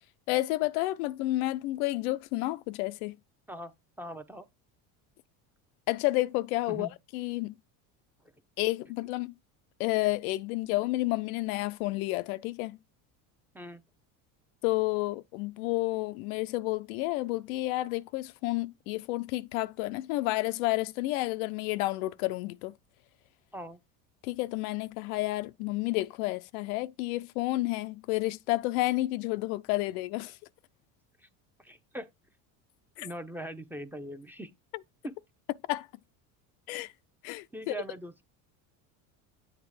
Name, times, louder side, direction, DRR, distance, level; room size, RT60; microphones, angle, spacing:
voice 1, 0.3-3.2 5.9-7.6 8.6-9.3 9.8-12.8 14.6-22.7 24.2-30.4 33.0-33.1 35.7-35.9 36.7-36.9 37.2-37.7, left 19 dB, 85° left, 0.7 m, -30 dB
voice 2, 4.0-4.5 6.7-6.9 13.5-13.8 23.5-23.8 31.2-31.3 31.6-32.1 33.0-34.5 35.0-35.1 37.5-38.2, right 1 dB, 5° right, 0.8 m, -41 dB
8.2 x 3.1 x 4.8 m
supercardioid pair, 115°, 42 cm